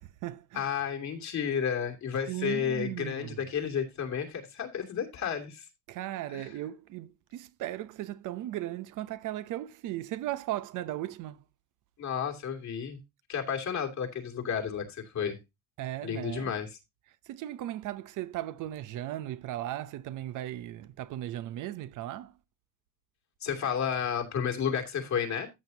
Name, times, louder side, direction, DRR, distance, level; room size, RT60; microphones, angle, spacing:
voice 1, 0.0-0.7 2.3-3.4 5.9-11.4 15.8-16.6 17.3-22.3, right 14 dB, 90° right, 0.8 m, -37 dB
voice 2, 0.5-5.7 6.3-6.5 12.0-13.0 13.3-15.4 16.0-16.7 23.4-25.5, left 7 dB, 65° left, 2.9 m, -32 dB
13.5 x 7.2 x 2.8 m
cardioid pair, 90°, 30 cm